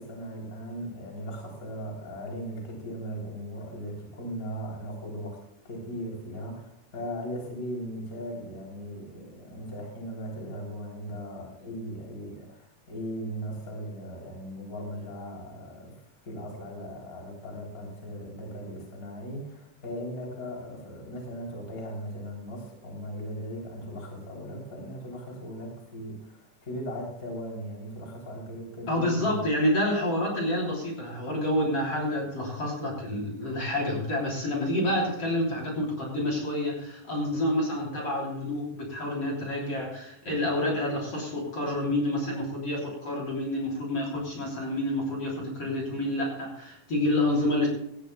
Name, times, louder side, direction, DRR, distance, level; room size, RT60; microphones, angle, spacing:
voice 1, 0.0-5.4 5.6-29.5, equal, 25° left, -1 dB, 3.5 m, -38 dB
voice 2, 28.9-47.7, left 1 dB, 40° left, -2 dB, 4.0 m, -28 dB
18.0 x 14.5 x 2.3 m, 0.79 s
omnidirectional pair, 4.1 m